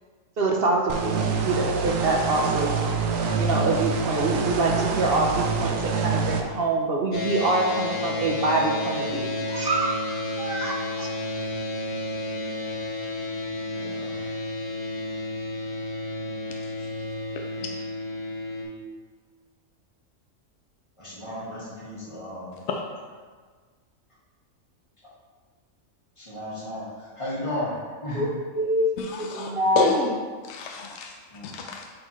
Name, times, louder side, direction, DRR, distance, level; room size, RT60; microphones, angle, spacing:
voice 1, 0.4-2.7 3.2-10.1 10.4-11.1 28.1-28.3 28.5-28.8 29.2-30.0, right 2 dB, 55° right, 0 dB, 0.7 m, -25 dB
sound 1, 0.9-6.4, right 5 dB, 75° right, 1.0 m, -26 dB
sound 2, 7.1-18.6, left 1 dB, 85° left, 1.5 m, -31 dB
voice 2, 13.7-14.3 21.0-22.6 26.2-27.7 28.0-28.3 31.3-31.5, left 1 dB, 25° left, -8 dB, 1.8 m, -34 dB
voice 3, 29.0-30.2 30.5-31.1 31.4-31.9, left 4 dB, 65° left, 1 dB, 0.8 m, -28 dB
8.5 x 4.2 x 3.0 m, 1.5 s
omnidirectional pair, 1.4 m